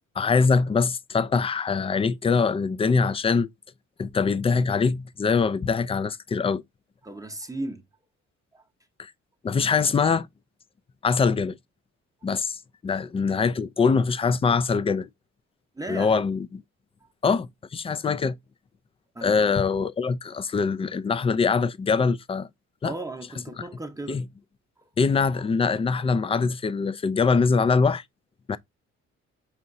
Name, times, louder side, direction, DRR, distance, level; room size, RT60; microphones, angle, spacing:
voice 1, 0.2-3.5 4.0-6.6 9.0-9.1 9.4-10.3 11.0-11.6 12.2-12.6 12.8-15.1 15.9-16.6 17.2-18.3 19.2-22.5 22.8-22.9 24.1-24.2 25.0-28.0 28.5-28.6, left 5 dB, 20° left, 0.3 m, -23 dB
voice 2, 7.0-7.9 8.5-8.6 15.8-16.1 19.1-19.4 22.8-24.2 24.8-24.9, right 2 dB, 10° right, 0.8 m, -36 dB
5.6 x 2.9 x 2.6 m
cardioid pair, 90°, 30 cm